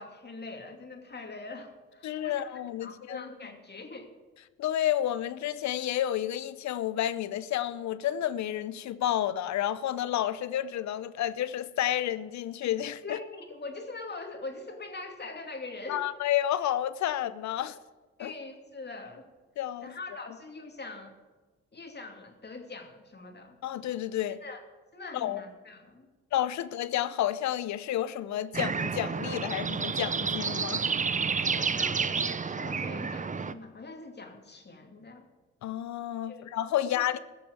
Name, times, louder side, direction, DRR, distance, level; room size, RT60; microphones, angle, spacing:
voice 1, 0.0-4.1 13.0-16.0 18.2-19.2 19.8-21.2 21.7-23.6 24.4-24.6 24.9-26.1 31.6-35.3 36.3-36.5 36.8-37.0, left 3 dB, 35° left, 2.5 m, -43 dB
voice 2, 2.0-3.3 4.6-13.2 15.9-17.8 18.2-18.3 19.6-19.9 23.6-24.4 25.1-25.4 26.3-30.8 35.6-37.2, left 12 dB, 70° left, 0.7 m, -30 dB
sound 1, 28.5-33.5, right 5 dB, 25° right, 0.7 m, -30 dB
16.0 x 6.9 x 8.1 m
supercardioid pair, 60°, 29 cm